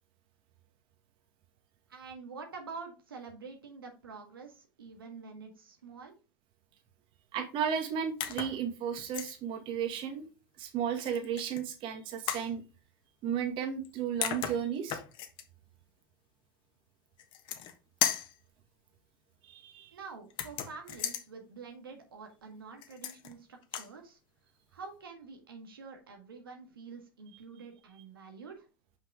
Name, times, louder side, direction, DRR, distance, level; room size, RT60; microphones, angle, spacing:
voice 1, 1.9-6.1 19.9-24.2 24.7-28.7, right 4 dB, 85° right, 3 dB, 1.6 m, -47 dB
voice 2, 7.3-10.3 10.6-12.6 13.2-15.0 19.4-19.9, right 8 dB, 45° right, 5 dB, 1.9 m, -34 dB
sound 1, 8.2-8.6 9.0-9.3 11.0-11.6 12.3-12.5 13.8-13.9 14.2-15.4 17.2-17.7 18.0-18.4 20.3-21.2 22.8-23.3 23.6-23.9, left 10 dB, 45° left, 1.3 m, -35 dB
5.8 x 5.7 x 3.5 m, 0.31 s
hypercardioid pair, 90°, 12 cm